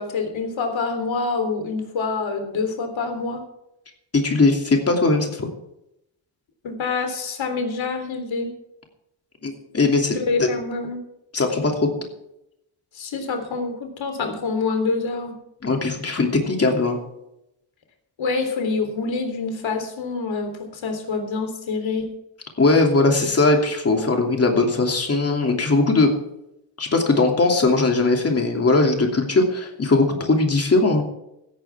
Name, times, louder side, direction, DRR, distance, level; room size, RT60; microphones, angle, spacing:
voice 1, 0.0-3.4 6.6-8.5 10.1-11.0 12.9-15.4 18.2-22.1, left 4 dB, 70° left, 5 dB, 3.7 m, -26 dB
voice 2, 4.1-5.5 9.4-10.5 11.3-11.9 15.6-17.0 22.6-26.1 26.8-31.0, left 3 dB, 30° left, 2 dB, 2.8 m, -19 dB
17.0 x 13.5 x 3.6 m, 0.83 s
wide cardioid pair, 160°, 47 cm